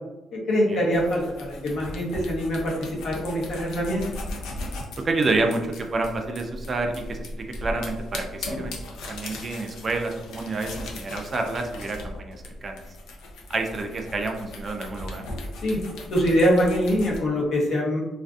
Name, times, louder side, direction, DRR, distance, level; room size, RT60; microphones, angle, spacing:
voice 1, 0.3-4.0 15.6-15.8 16.1-18.0, equal, 65° left, -3 dB, 0.8 m, -24 dB
sound 1, 0.9-17.2, left 1 dB, 85° left, 0.4 m, -38 dB
voice 2, 5.0-8.8 9.1-12.4 12.6-12.8 13.5-15.3, right 3 dB, 35° right, 4 dB, 0.3 m, -28 dB
2.4 x 2.4 x 2.3 m, 1.1 s
cardioid pair, 120°, 0 cm